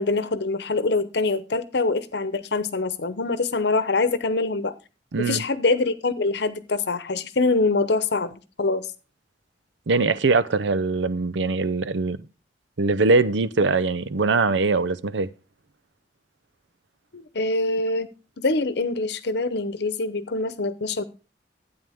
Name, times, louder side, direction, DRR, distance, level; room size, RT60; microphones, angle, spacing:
voice 1, 0.0-4.7 5.2-8.9 17.1-18.1 18.4-21.0, left 3 dB, 65° left, 0.9 m, -24 dB
voice 2, 5.1-5.4 9.9-12.2 12.8-15.3, right 3 dB, 85° right, 0.6 m, -22 dB
12.5 x 9.1 x 3.5 m
head